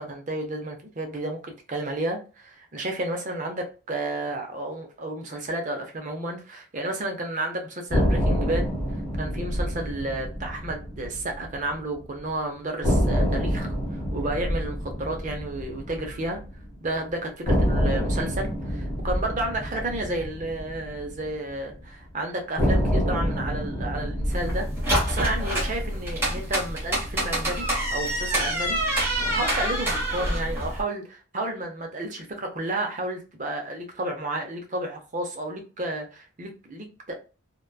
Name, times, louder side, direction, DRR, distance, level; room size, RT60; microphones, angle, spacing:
voice 1, 0.0-8.7 9.2-16.4 16.8-24.7 25.0-27.7 27.9-28.8 29.3-37.1, right 1 dB, 35° right, 3 dB, 0.5 m, -32 dB
sound 1, 7.9-12.0 12.3-12.4 12.8-16.9 17.5-21.8 22.6-26.9, equal, 15° left, 1.0 m, -27 dB
sound 2, 24.3-30.8, right 1 dB, 10° right, 0.9 m, -26 dB
2.9 x 2.2 x 2.2 m, 0.34 s
head